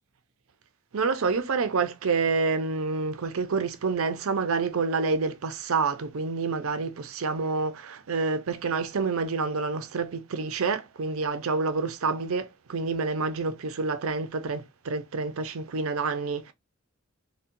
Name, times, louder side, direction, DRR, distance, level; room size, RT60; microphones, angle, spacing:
voice 1, 0.9-16.5, right 4 dB, 90° right, 0.6 m, -28 dB
4.0 x 2.2 x 2.5 m
head